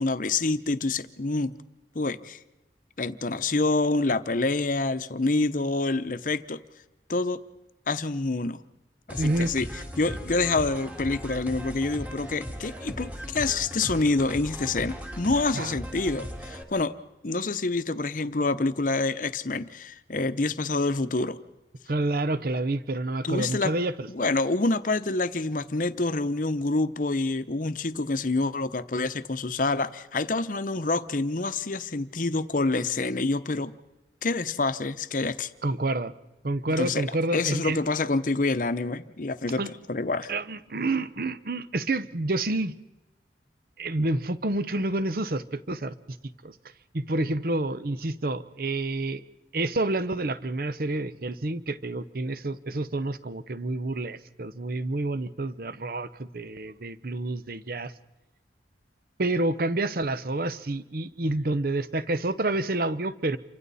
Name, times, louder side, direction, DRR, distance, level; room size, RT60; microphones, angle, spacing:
voice 1, 0.0-1.5 1.9-2.4 3.0-6.6 7.1-7.4 7.9-8.6 9.1-16.9 17.2-21.4 23.2-23.7 24.1-33.7 34.2-35.5 36.8-39.6 39.9-40.3, left 3 dB, 50° left, 12 dB, 0.8 m, -27 dB
sound 1, 9.1-16.6, equal, 10° right, 2.0 m, -38 dB
voice 2, 9.2-9.5 15.5-15.8 21.9-24.3 35.6-36.1 36.4-37.8 39.6-39.7 40.3-42.7 43.8-45.9 46.4-46.5 46.9-49.2 49.5-57.9 59.2-63.4, right 2 dB, 55° right, 14 dB, 0.8 m, -28 dB
28.5 x 25.0 x 4.2 m, 1.0 s
head